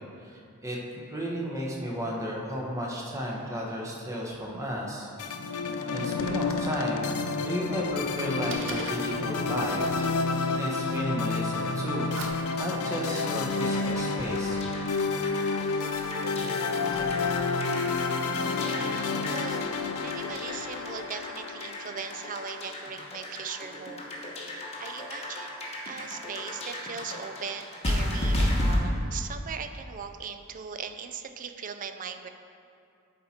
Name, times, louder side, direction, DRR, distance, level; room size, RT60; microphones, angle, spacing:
voice 1, 0.2-0.8 1.1-5.1 5.9-12.2 12.6-14.6, equal, 15° right, -3 dB, 1.0 m, -33 dB
sound 1, 5.2-22.6, left 4 dB, 80° left, 0.5 m, -30 dB
Fire, 7.6-21.0, right 2 dB, 55° right, 0.9 m, -48 dB
sound 2, 12.8-28.8, left 1 dB, 30° left, 1.0 m, -35 dB
voice 2, 18.5-24.1 24.8-32.3, right 6 dB, 35° right, 8 dB, 0.4 m, -39 dB
11.0 x 4.3 x 4.3 m, 2.5 s
head